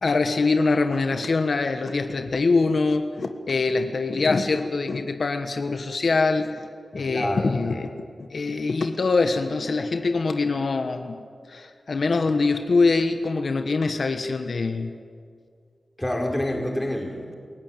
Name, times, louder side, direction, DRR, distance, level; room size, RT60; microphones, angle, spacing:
voice 1, 0.0-6.6 6.9-7.9 8.2-15.0, left 3 dB, 65° left, 7 dB, 1.4 m, -24 dB
voice 2, 7.1-7.8 16.0-17.3, left 1 dB, 15° left, 1 dB, 4.7 m, -28 dB
28.0 x 15.5 x 9.1 m, 2.2 s
cardioid pair, 55°, 0 cm